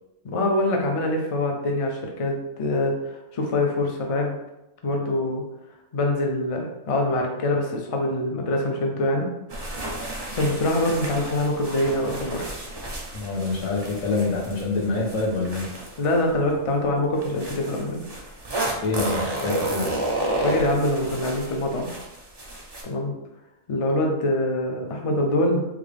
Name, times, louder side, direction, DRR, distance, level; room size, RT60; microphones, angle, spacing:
voice 1, 0.2-4.4 4.8-5.4 5.9-9.3 10.3-12.5 16.0-18.0 20.4-21.9 22.8-23.1 23.7-25.6, left 1 dB, 55° left, 1 dB, 0.3 m, -24 dB
sound 1, 9.5-16.5 17.2-22.8, right 1 dB, 40° right, 0.3 m, -31 dB
voice 2, 13.1-15.7 18.8-19.9, left 3 dB, 80° left, -1 dB, 1.2 m, -26 dB
3.6 x 2.4 x 3.2 m, 0.92 s
omnidirectional pair, 1.4 m